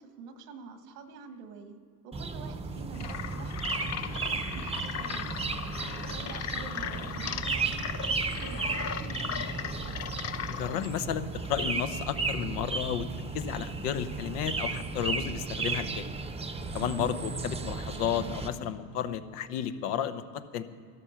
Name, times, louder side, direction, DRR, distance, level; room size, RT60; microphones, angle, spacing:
voice 1, 0.0-5.5 5.9-9.9 16.7-17.1, right 5 dB, 90° right, 8 dB, 1.4 m, -47 dB
sound 1, 2.1-18.5, right 4 dB, 15° right, 0.7 m, -34 dB
sound 2, 2.9-10.9, left 8 dB, 35° left, 0.6 m, -38 dB
voice 2, 10.5-13.1 13.3-16.0 16.7-20.6, left 9 dB, 85° left, 11 dB, 0.9 m, -32 dB
12.5 x 12.5 x 5.7 m, 2.2 s
supercardioid pair, 95°, 46 cm